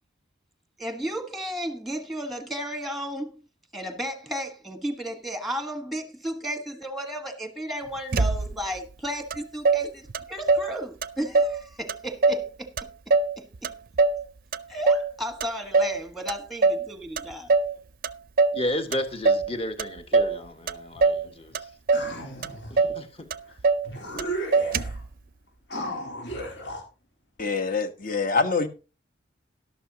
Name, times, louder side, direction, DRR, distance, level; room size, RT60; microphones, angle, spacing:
voice 1, 0.8-3.4 3.7-12.7 13.1-13.7 14.7-17.5, equal, ahead, 1.4 m, -34 dB
Motor vehicle (road), 8.1-8.8 9.3-9.4 9.6-10.7 11.0-11.6 11.9-12.5 12.8-14.2 14.5-15.1 15.4-16.0 16.3-16.9 17.2-17.7 18.0-18.6 18.9-19.5 19.8-20.4 20.7-21.3 21.5-22.1 22.4-22.5 22.8-23.0 23.3-23.9 24.2-24.3 24.5-25.1, right 3 dB, 50° right, 0.5 m, -22 dB
voice 2, 18.5-21.7 22.7-23.3 24.1-24.3, left 1 dB, 30° left, 1.6 m, -33 dB
sound 1, 21.9-22.8 23.5-23.6 23.8-25.0 25.7-26.8, right 1 dB, 65° left, 3.8 m, -34 dB
voice 3, 27.4-28.7, left 4 dB, 45° left, 1.3 m, -25 dB
12.5 x 12.0 x 2.9 m
head